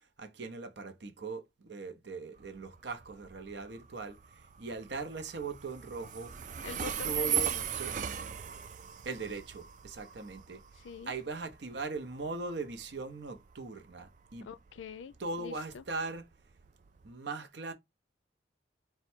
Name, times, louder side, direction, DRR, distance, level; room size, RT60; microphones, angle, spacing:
voice 1, 0.2-6.3 7.0-7.9 9.0-10.6 11.1-14.5 15.2-16.2 17.0-17.7, right 3 dB, 65° right, 0.7 m, -40 dB
Train, 2.4-17.1, right 9 dB, 40° right, 0.3 m, -39 dB
voice 2, 6.6-7.7 10.7-11.1 14.4-15.8, left 5 dB, 85° left, 0.4 m, -45 dB
4.3 x 2.3 x 4.3 m
head